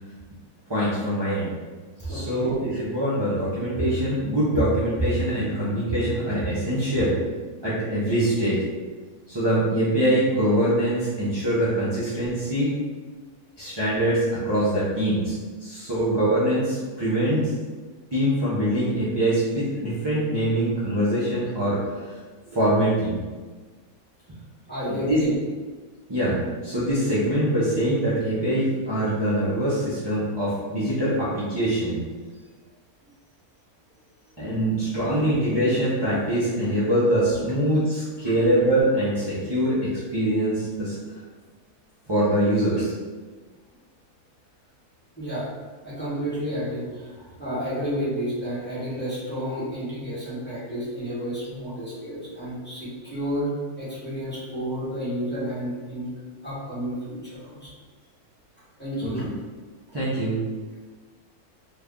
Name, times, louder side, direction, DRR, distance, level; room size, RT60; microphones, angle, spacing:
voice 1, 0.7-1.5 2.0-7.1 7.6-8.6 9.3-12.7 13.6-15.4 15.6-17.5 18.1-21.8 22.1-22.2 22.5-23.2 24.9-25.2 26.1-26.4 26.6-32.0 34.4-41.0 42.1-42.9 59.0-59.2 59.9-60.4, right 1 dB, 35° right, -12 dB, 0.4 m, -23 dB
voice 2, 2.0-2.5 24.7-25.4 35.0-35.3 45.2-45.5 45.8-53.5 53.8-56.1 56.4-57.7 58.8-59.2, equal, 10° left, -11 dB, 0.9 m, -31 dB
3.2 x 2.2 x 3.6 m, 1.4 s
omnidirectional pair, 1.6 m